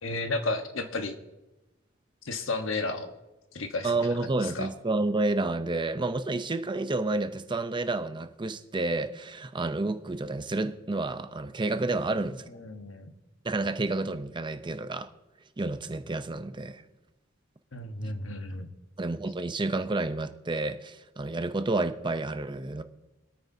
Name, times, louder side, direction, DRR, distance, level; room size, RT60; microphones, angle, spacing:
voice 1, 0.0-1.2 2.2-3.1 3.5-4.7 12.2-12.3 12.5-13.1 17.7-18.7, left 3 dB, 85° left, 1.2 m, -33 dB
voice 2, 3.8-12.4 13.4-15.1 15.6-16.8 19.0-22.8, right 2 dB, 25° right, 0.6 m, -30 dB
25.0 x 9.2 x 2.7 m
head